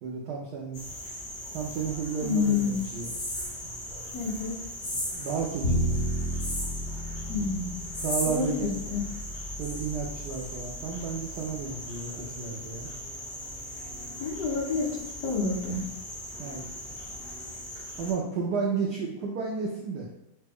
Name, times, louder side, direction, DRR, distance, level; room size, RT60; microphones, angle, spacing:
voice 1, 0.0-0.8 1.5-3.1 5.1-6.0 8.0-8.7 9.6-12.9 16.4-16.7 18.0-20.1, right 5 dB, 75° right, -1 dB, 0.9 m, -32 dB
sound 1, 0.7-18.1, left 1 dB, 85° left, 2.6 m, -38 dB
voice 2, 2.2-2.8 4.1-4.6 7.3-7.7 8.3-9.0 14.2-15.0 15.2-15.8, left 5 dB, 65° left, -1 dB, 1.3 m, -28 dB
Bowed string instrument, 5.6-11.8, equal, 35° left, 1.6 m, -33 dB
5.8 x 2.2 x 3.4 m, 0.87 s
omnidirectional pair, 2.3 m